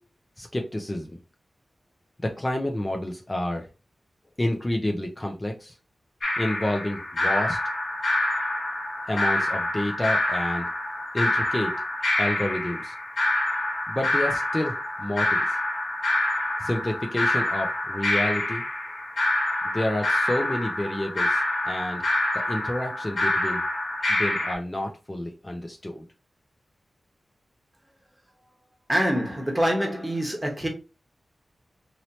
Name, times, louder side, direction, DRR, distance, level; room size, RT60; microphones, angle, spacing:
voice 1, 0.4-1.1 2.2-3.7 4.4-5.8 6.4-7.6 9.1-10.7 11.1-11.7 12.2-12.9 13.9-15.6 16.6-18.6 19.6-22.1 22.3-23.6 24.1-26.0, left 1 dB, 20° left, 0.5 m, -29 dB
sound 1, 6.2-24.5, left 1 dB, 60° left, 0.9 m, -26 dB
voice 2, 28.9-30.7, equal, 15° right, 1.0 m, -25 dB
3.0 x 2.8 x 2.8 m
wide cardioid pair, 80°, 0 cm